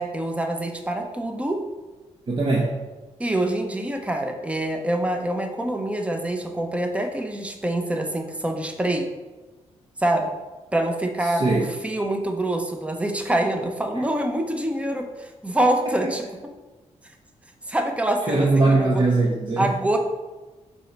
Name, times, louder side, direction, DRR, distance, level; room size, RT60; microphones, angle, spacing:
voice 1, 0.0-1.6 3.2-9.1 10.0-10.3 10.7-16.2 17.7-19.0 19.6-20.0, right 1 dB, 10° right, 4 dB, 0.7 m, -25 dB
voice 2, 2.3-2.7 11.3-11.6 18.3-19.7, right 3 dB, 40° right, -2 dB, 0.9 m, -20 dB
5.4 x 4.2 x 4.5 m, 1.2 s
cardioid pair, 95°, 12 cm